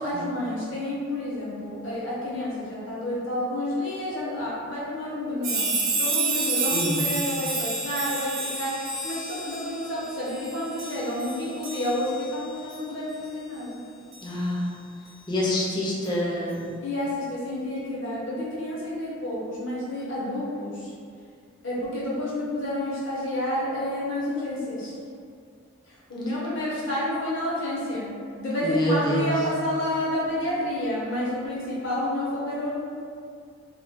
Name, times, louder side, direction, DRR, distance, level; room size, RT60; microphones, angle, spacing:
voice 1, 0.0-5.7 6.0-13.8 16.8-20.9 21.6-24.9 25.9-32.7, left 1 dB, 60° left, -7 dB, 0.9 m, -30 dB
sound 1, 5.4-12.3 12.7-12.8 14.1-14.2, right 3 dB, 70° right, 0.7 m, -29 dB
voice 2, 6.7-7.0 14.2-14.7 15.3-16.6 28.6-29.3, left 1 dB, 20° left, -6 dB, 0.4 m, -26 dB
2.4 x 2.1 x 3.6 m, 2.2 s
head